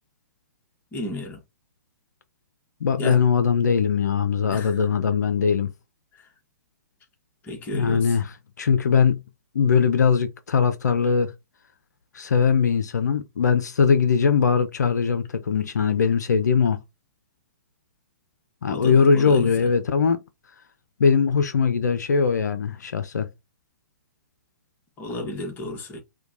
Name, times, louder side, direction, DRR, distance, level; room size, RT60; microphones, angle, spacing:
voice 1, 0.9-1.4 3.0-3.2 4.5-4.8 7.4-8.2 18.7-19.7 25.0-26.0, left 1 dB, 20° left, 1.1 m, -32 dB
voice 2, 2.8-5.7 7.7-8.3 8.6-9.2 9.5-11.3 12.1-16.8 18.6-20.2 21.0-23.3, left 6 dB, 75° left, 0.5 m, -21 dB
4.4 x 2.2 x 2.5 m
hypercardioid pair, 125°, 9 cm